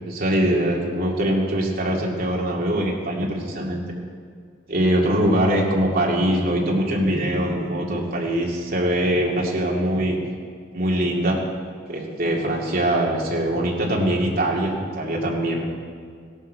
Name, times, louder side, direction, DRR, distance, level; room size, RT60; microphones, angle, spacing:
voice 1, 0.0-3.8 4.7-10.2 10.7-11.4 11.9-15.6, right 1 dB, 45° right, -2 dB, 2.3 m, -22 dB
16.5 x 11.0 x 4.6 m, 2.1 s
head